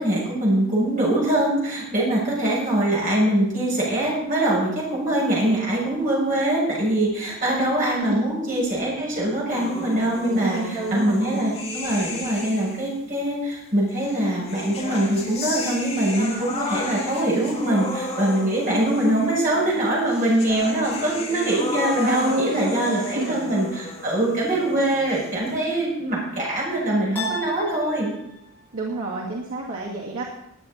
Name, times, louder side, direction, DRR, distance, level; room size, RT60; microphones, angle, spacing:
voice 1, 0.0-28.1, right 1 dB, 40° right, -5 dB, 7.0 m, -23 dB
sound 1, 9.5-13.0 14.0-25.5, left 2 dB, 30° left, 3.5 m, -33 dB
voice 2, 10.3-11.4 22.0-23.4 28.7-30.2, right 2 dB, 75° right, -5 dB, 2.3 m, -29 dB
sound 2, 24.6-25.3 27.2-28.6, equal, 10° left, 5.5 m, -35 dB
19.5 x 9.1 x 4.3 m, 0.79 s
head